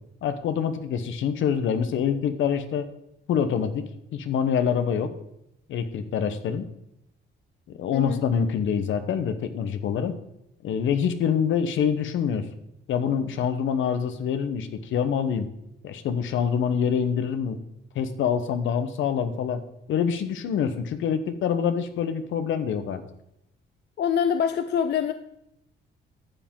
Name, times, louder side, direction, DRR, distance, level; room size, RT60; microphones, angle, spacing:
voice 1, 0.2-2.9 3.3-5.1 5.7-6.7 7.8-10.1 10.6-12.5 12.9-15.5 15.8-17.6 17.9-19.6 19.9-23.0, left 7 dB, 75° left, 9 dB, 1.1 m, -25 dB
voice 2, 7.9-8.2 24.0-25.1, left 8 dB, 60° left, 10 dB, 0.5 m, -24 dB
12.0 x 7.3 x 3.7 m, 0.81 s
cardioid pair, 90°, 20 cm